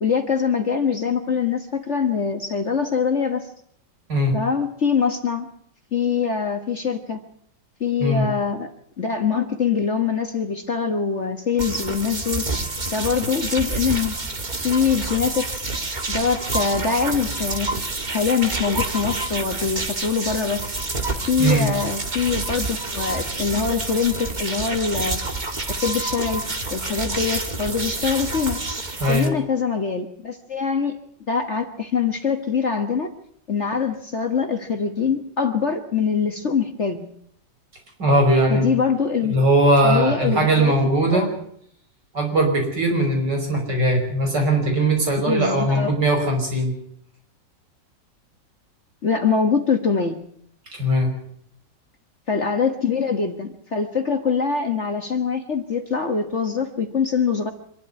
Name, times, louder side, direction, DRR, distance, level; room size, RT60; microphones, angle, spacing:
voice 1, 0.0-3.5 4.3-5.5 5.9-7.2 7.8-8.7 9.0-12.4 12.9-14.1 14.6-15.6 16.1-17.7 18.1-20.6 21.3-25.2 25.8-26.4 26.7-28.6 29.1-31.0 31.3-33.1 33.5-37.1 38.5-39.3 39.8-40.7 41.1-41.3 45.3-45.9 49.0-50.2 52.3-57.5, left 6 dB, 40° left, 6 dB, 1.6 m, -23 dB
sound 1, 11.6-29.3, right 2 dB, 25° right, 1.8 m, -28 dB
voice 2, 38.0-38.8 39.3-41.3 42.1-46.7 50.7-51.1, right 1 dB, 65° right, 2 dB, 6.2 m, -19 dB
25.0 x 12.0 x 9.6 m, 0.68 s
omnidirectional pair, 2.0 m